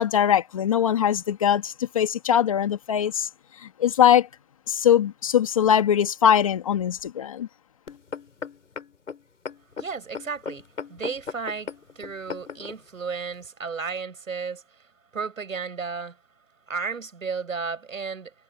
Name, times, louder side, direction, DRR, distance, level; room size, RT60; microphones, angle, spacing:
voice 1, 0.0-3.3 3.8-4.3 4.7-7.5, left 9 dB, 25° left, 2.0 m, -21 dB
sound 1, 7.9-12.8 13.4-13.5, left 5 dB, 65° left, 6.8 m, -37 dB
voice 2, 9.8-10.6 10.9-14.6 15.1-16.2 16.7-18.3, right 5 dB, 65° right, 7.9 m, -33 dB
hypercardioid pair, 170°, 42 cm